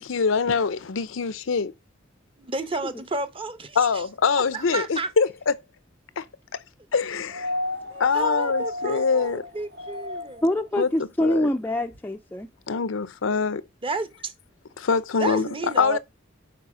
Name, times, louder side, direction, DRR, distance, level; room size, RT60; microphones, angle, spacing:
voice 1, 0.0-1.7 3.8-5.5 6.2-6.3 6.5-6.6 6.9-7.5 8.0-9.4 10.8-10.9 11.2-11.5 12.7-13.6 14.8-15.5 15.8-16.0, left 5 dB, 80° left, 0.6 m, -24 dB
voice 2, 2.4-3.8 4.5-5.1 7.9-10.4 13.8-14.3 15.2-16.0, right 3 dB, 25° right, 0.9 m, -31 dB
sound 1, 7.3-10.5 11.9-12.0, left 1 dB, 55° right, 1.0 m, -32 dB
voice 3, 10.4-12.5, left 1 dB, 10° left, 0.4 m, -25 dB
6.9 x 4.7 x 4.9 m
head